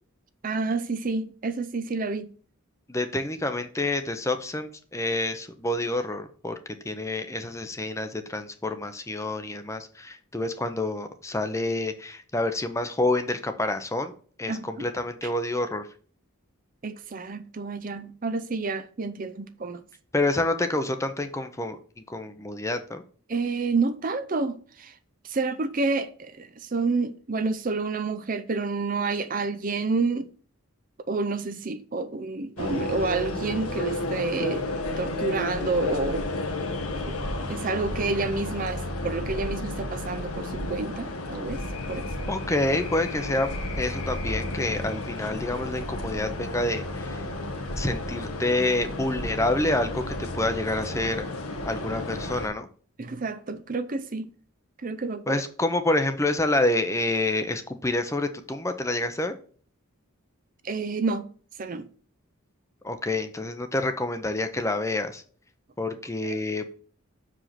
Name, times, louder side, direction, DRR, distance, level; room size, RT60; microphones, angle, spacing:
voice 1, 0.4-2.3 14.5-14.9 15.2-15.3 16.8-19.8 23.3-25.0 25.2-30.3 31.1-34.7 35.0-36.3 37.1-37.2 37.5-42.3 53.0-54.3 54.8-55.4 60.6-61.3 61.6-61.9 66.2-66.4, right 3 dB, 40° right, 0.5 m, -29 dB
voice 2, 2.9-6.6 6.8-14.1 14.4-15.9 20.1-21.8 22.1-23.0 42.3-43.5 43.8-47.2 47.8-51.3 51.6-52.7 55.3-59.4 62.8-65.2 65.8-66.7, left 2 dB, 15° left, 0.7 m, -28 dB
sound 1, 32.6-52.5, left 1 dB, 90° left, 1.5 m, -32 dB
6.6 x 5.0 x 5.8 m
head